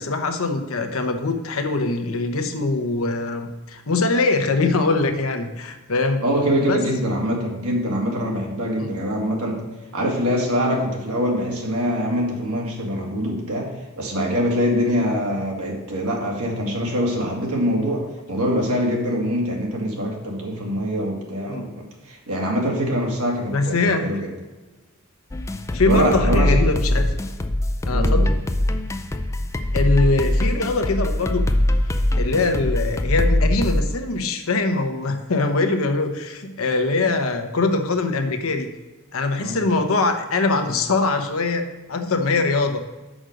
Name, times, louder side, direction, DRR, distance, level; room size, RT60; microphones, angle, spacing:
voice 1, 0.0-6.2 6.6-6.8 21.5-21.6 23.5-24.1 25.7-27.1 27.9-28.3 29.7-31.5 32.2-38.7 39.1-42.8, left 3 dB, 65° left, 6 dB, 0.9 m, -22 dB
voice 2, 6.2-9.6 9.9-24.3 25.9-26.5 27.9-28.3 39.4-39.6, equal, 85° right, -1 dB, 2.0 m, -24 dB
sound 1, 25.3-33.8, left 1 dB, 15° left, 0.4 m, -21 dB
6.2 x 5.0 x 6.4 m, 1.2 s
head